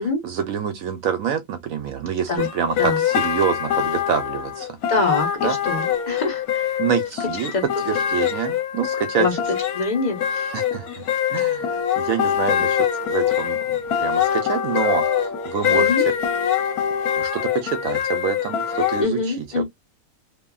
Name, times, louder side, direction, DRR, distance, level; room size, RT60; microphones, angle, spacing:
voice 1, 0.2-4.7 5.4-5.6 6.8-7.5 7.8-9.3 10.5-11.0 11.3-12.8 13.1-15.9 17.2-19.6, right 8 dB, 70° right, 1.0 m, -26 dB
sound 1, 2.4-19.0, left 9 dB, 75° left, 1.2 m, -24 dB
voice 2, 4.9-6.8 7.5-7.6 7.9-8.0 9.2-9.4 9.7-10.6 15.7-16.0 19.0-19.6, left 3 dB, 30° left, 1.1 m, -25 dB
2.7 x 2.5 x 2.3 m
omnidirectional pair, 1.6 m